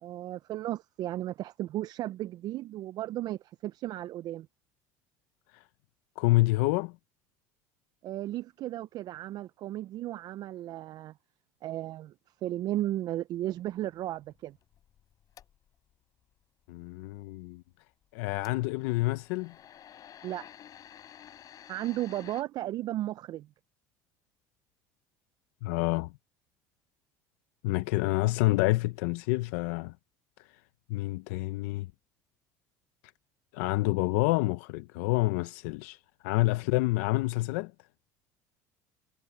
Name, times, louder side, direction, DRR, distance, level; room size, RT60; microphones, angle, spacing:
voice 1, 0.0-4.5 8.0-11.1 11.6-12.1 12.4-14.6 20.2-20.5 21.7-23.5, right 14 dB, 50° right, 0.4 m, -35 dB
voice 2, 6.2-6.9 16.7-17.6 18.1-19.5 25.6-26.1 27.6-29.9 30.9-31.9 33.5-36.0 36.2-37.7, left 21 dB, 80° left, 0.7 m, -28 dB
sound 1, 13.4-15.9 18.3-22.4, left 10 dB, 45° left, 7.7 m, -52 dB
supercardioid pair, 100°, 9 cm